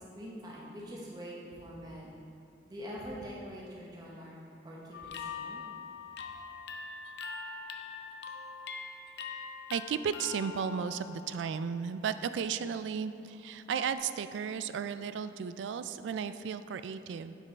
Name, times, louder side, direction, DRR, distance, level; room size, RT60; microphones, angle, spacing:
voice 1, 0.1-2.1 2.7-4.3 4.6-5.6, equal, 20° right, -5 dB, 0.9 m, -44 dB
sound 1, 4.9-11.8 12.2-12.6 13.7-14.0, left 5 dB, 70° left, 0.5 m, -43 dB
voice 2, 9.7-17.4, right 7 dB, 90° right, 12 dB, 0.3 m, -34 dB
7.5 x 5.4 x 4.0 m, 2.5 s
head